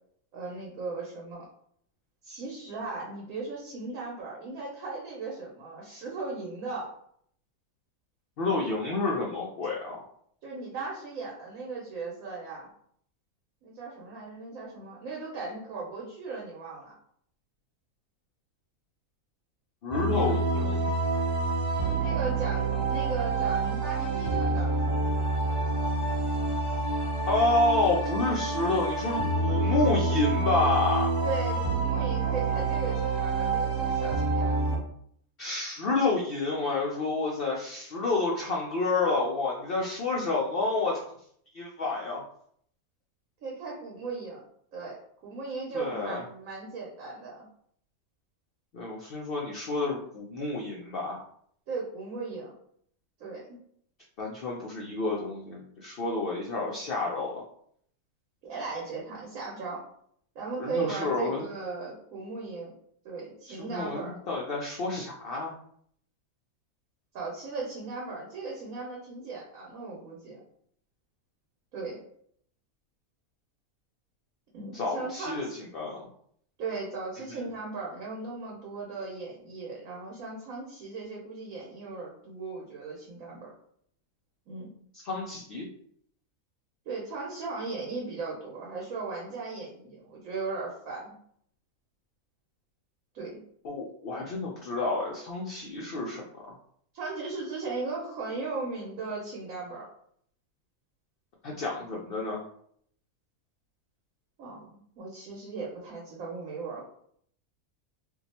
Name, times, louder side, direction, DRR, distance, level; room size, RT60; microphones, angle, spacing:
voice 1, 0.3-1.5 2.2-7.0 10.4-12.7 13.6-16.9 20.1-20.5 21.8-24.8 31.2-34.5 43.4-44.4 44.7-47.5 51.7-52.5 53.2-53.6 58.4-59.8 60.3-62.7 63.0-64.1 67.1-70.4 71.7-72.0 74.5-75.5 76.6-83.5 84.5-84.7 86.9-91.2 93.1-93.4 96.9-99.9 104.4-106.9, right 4 dB, 70° right, -3 dB, 1.2 m, -37 dB
voice 2, 8.4-10.1 19.8-20.9 27.3-31.1 35.4-41.0 41.5-42.2 45.7-46.2 48.7-51.2 54.2-57.4 60.6-61.5 63.5-65.5 74.7-75.5 75.7-76.1 77.3-77.4 85.0-85.7 93.6-96.5 101.4-102.4, left 3 dB, 70° left, -3 dB, 0.5 m, -29 dB
sound 1, 19.9-34.8, right 3 dB, 20° right, 1.2 m, -27 dB
2.7 x 2.2 x 4.1 m, 0.65 s
omnidirectional pair, 1.6 m